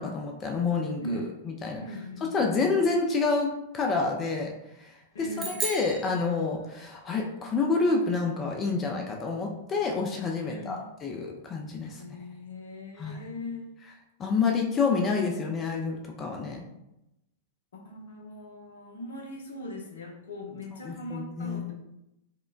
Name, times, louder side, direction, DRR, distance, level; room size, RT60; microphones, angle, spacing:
voice 1, 0.0-1.8 2.3-4.5 4.8-4.9 5.2-12.0 13.0-13.2 14.2-16.6 20.8-21.7, left 4 dB, 25° left, 1 dB, 0.4 m, -28 dB
voice 2, 1.8-2.4 5.1-5.5 10.4-10.8 12.0-13.7 17.7-21.7, left 1 dB, 65° left, 1 dB, 0.7 m, -40 dB
sound 1, 5.4-7.0, right 4 dB, 20° right, 0.9 m, -36 dB
4.9 x 2.1 x 2.3 m, 0.88 s
figure-of-eight pair, 100°, 0 cm